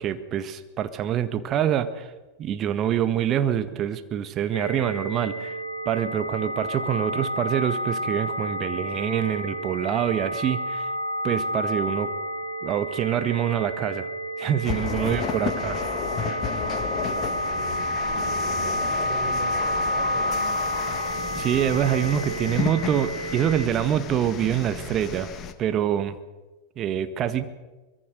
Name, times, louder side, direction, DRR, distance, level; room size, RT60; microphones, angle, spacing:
voice 1, 0.0-2.1 2.4-5.6 5.8-10.9 11.2-12.1 12.6-14.1 14.4-15.8 21.3-25.3 25.6-26.2 26.8-27.6, right 10 dB, 30° right, 11 dB, 1.6 m, -25 dB
sound 1, 4.5-23.7, equal, 90° left, 2.3 m, -30 dB
sound 2, 14.6-25.5, left 8 dB, 30° left, 1.9 m, -33 dB
voice 2, 15.0-15.6 15.9-20.7, right 4 dB, 55° right, 4 dB, 5.4 m, -39 dB
24.0 x 21.5 x 6.6 m, 1.2 s
figure-of-eight pair, 90°, 0 cm